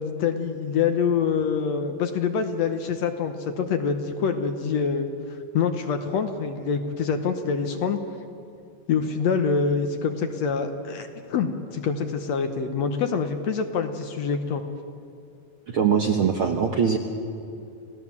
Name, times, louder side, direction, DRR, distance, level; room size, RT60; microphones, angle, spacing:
voice 1, 0.0-5.1 5.5-8.0 8.9-14.6, left 6 dB, 65° left, 7 dB, 1.9 m, -25 dB
voice 2, 15.7-17.0, right 7 dB, 65° right, 3 dB, 1.3 m, -22 dB
28.0 x 17.0 x 7.2 m, 2.6 s
omnidirectional pair, 3.8 m